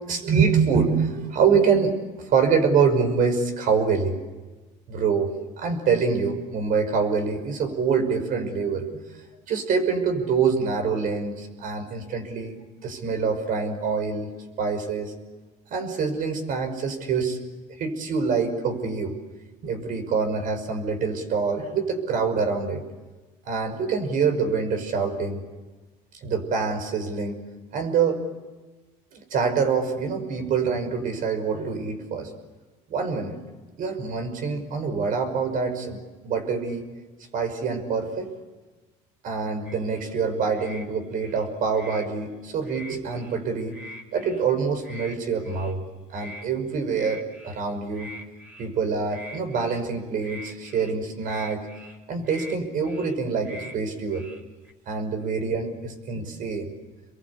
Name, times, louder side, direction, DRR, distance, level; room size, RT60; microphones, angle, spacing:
voice 1, 0.1-4.2 4.9-5.3 5.6-8.9 9.5-12.6 12.8-14.3 14.6-15.1 15.7-17.4 17.8-19.1 19.6-22.8 23.5-25.4 26.2-27.4 27.7-28.2 29.1-32.3 32.9-33.4 33.8-36.9 37.3-38.3 39.2-43.8 44.1-45.8 46.1-48.1 48.6-51.7 52.1-54.3 54.9-56.7, right 5 dB, 55° right, 7 dB, 5.7 m, -25 dB
sound 1, 39.6-40.1 40.5-40.9 41.1-42.1 42.6-43.4 43.7-44.4 44.8-45.2 45.4-45.7 46.1-46.4 46.9-47.6 47.9-48.8 49.1-49.8 50.2-50.9 51.2-52.0 52.2-52.6 52.8-53.1 53.4-53.8 54.1-54.7, equal, 10° right, 4.7 m, -43 dB
29.0 x 22.5 x 8.5 m, 1.2 s
cardioid pair, 115°, 17 cm